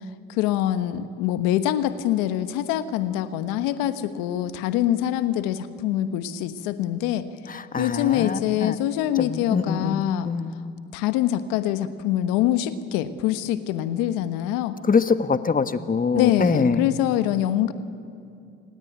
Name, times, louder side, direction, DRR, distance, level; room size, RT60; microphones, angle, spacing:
voice 1, 0.3-7.3 7.8-10.3 10.9-14.8 16.1-17.7, left 12 dB, 85° left, 11 dB, 1.2 m, -24 dB
voice 2, 7.5-8.8 9.2-10.6 14.8-16.8, left 5 dB, 25° left, 11 dB, 1.3 m, -24 dB
28.0 x 18.5 x 9.3 m, 2.5 s
supercardioid pair, 75°, 33 cm